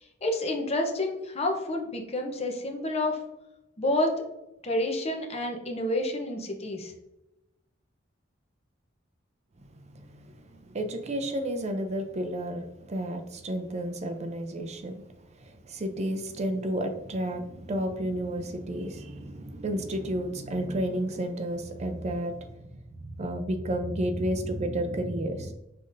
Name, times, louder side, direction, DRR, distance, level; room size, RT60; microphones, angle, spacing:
voice 1, 0.2-3.2 3.8-4.2 4.6-6.9, left 1 dB, 30° left, 3 dB, 0.7 m, -29 dB
voice 2, 9.9-10.3 10.5-15.0 15.4-22.4 22.7-25.5, right 1 dB, 35° right, 6 dB, 0.4 m, -31 dB
5.5 x 3.7 x 2.5 m, 0.91 s
head